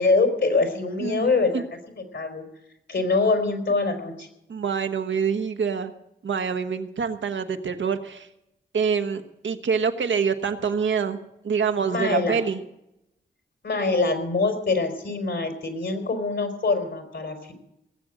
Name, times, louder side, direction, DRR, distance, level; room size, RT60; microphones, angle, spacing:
voice 1, 0.0-1.6 1.9-2.4 2.9-4.3 11.9-12.4 13.6-17.5, left 3 dB, 70° left, 5 dB, 3.9 m, -24 dB
voice 2, 1.0-1.6 4.5-5.9 6.2-8.3 8.7-11.2 11.4-12.6, right 6 dB, 80° right, 8 dB, 1.3 m, -26 dB
18.5 x 7.9 x 7.7 m, 0.84 s
cardioid pair, 50°, 19 cm